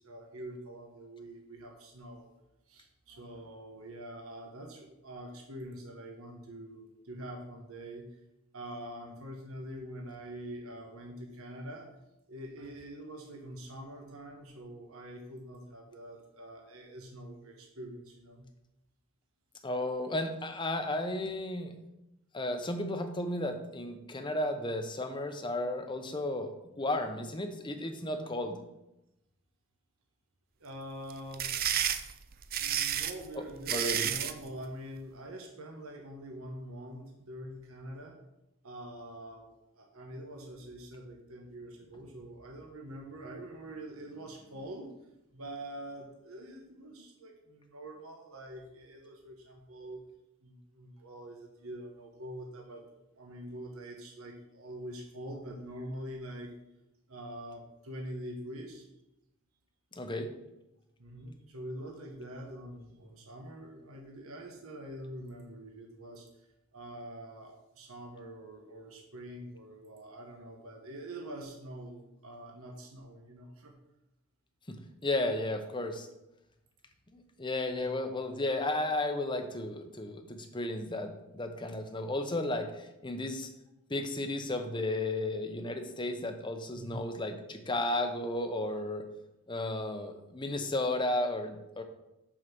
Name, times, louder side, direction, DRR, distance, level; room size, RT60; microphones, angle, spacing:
voice 1, 0.0-2.3 2.7-8.0 8.5-11.9 12.3-18.5 30.6-31.5 32.5-38.2 38.6-39.5 39.7-45.1 45.3-50.0 50.4-52.8 53.1-56.5 57.1-58.8 61.0-66.3 66.7-73.7 77.7-77.9 86.7-87.1, right 1 dB, 80° right, 1 dB, 1.2 m, -45 dB
voice 2, 19.6-21.7 22.3-26.5 26.8-28.6 33.3-34.1 60.0-60.3 74.7-74.8 75.0-76.1 77.1-83.5 83.9-89.0 89.5-91.8, left 1 dB, 20° left, 6 dB, 0.8 m, -33 dB
sound 1, 31.1-34.4, right 10 dB, 45° right, 0.5 m, -31 dB
6.4 x 5.7 x 6.0 m, 0.91 s
head